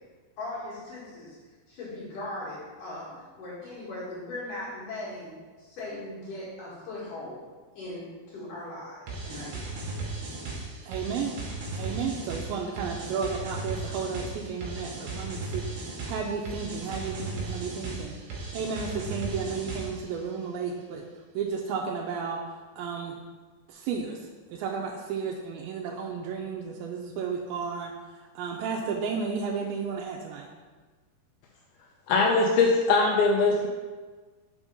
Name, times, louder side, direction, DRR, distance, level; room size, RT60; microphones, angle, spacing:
voice 1, 0.4-1.4 1.7-7.4 7.7-9.7, left 2 dB, 60° left, -8 dB, 2.6 m, -39 dB
sound 1, 9.1-20.1, right 3 dB, 70° right, 2.1 m, -36 dB
voice 2, 10.9-11.4 11.7-18.2 18.5-21.0 21.3-22.4 22.8-23.2 23.7-24.2 24.5-27.9 28.4-30.5, right 5 dB, 85° right, 0 dB, 2.1 m, -33 dB
voice 3, 32.1-33.7, left 3 dB, 80° left, -1 dB, 2.3 m, -21 dB
6.2 x 3.6 x 5.2 m, 1.4 s
omnidirectional pair, 4.7 m